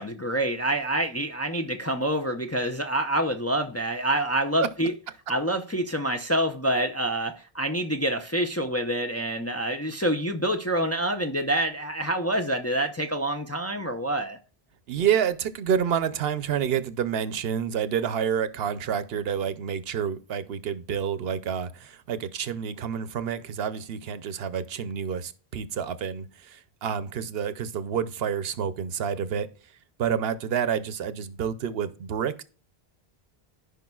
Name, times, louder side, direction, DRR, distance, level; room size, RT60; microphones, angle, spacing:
voice 1, 0.0-4.9 5.3-14.4, right 1 dB, 20° left, 0.5 m, -27 dB
voice 2, 14.9-29.5 30.0-32.4, right 8 dB, 70° right, 0.9 m, -28 dB
15.0 x 5.3 x 2.3 m
omnidirectional pair, 1.0 m